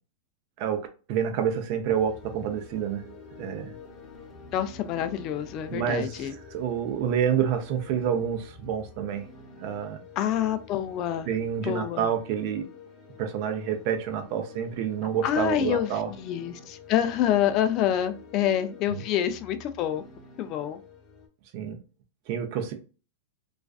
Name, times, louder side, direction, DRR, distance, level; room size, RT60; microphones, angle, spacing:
voice 1, 0.6-3.1 3.4-3.8 5.7-9.3 9.6-10.0 11.3-12.7 13.2-16.1 18.9-19.0 21.5-21.8 22.3-22.7, right 8 dB, 50° right, 0.5 m, -28 dB
sound 1, 1.9-21.3, left 4 dB, 25° left, 0.8 m, -48 dB
voice 2, 4.5-6.3 10.2-11.3 11.6-12.1 15.2-15.9 16.2-20.0 20.4-20.8, left 10 dB, 40° left, 0.4 m, -27 dB
2.4 x 2.3 x 2.3 m
hypercardioid pair, 130°, 0 cm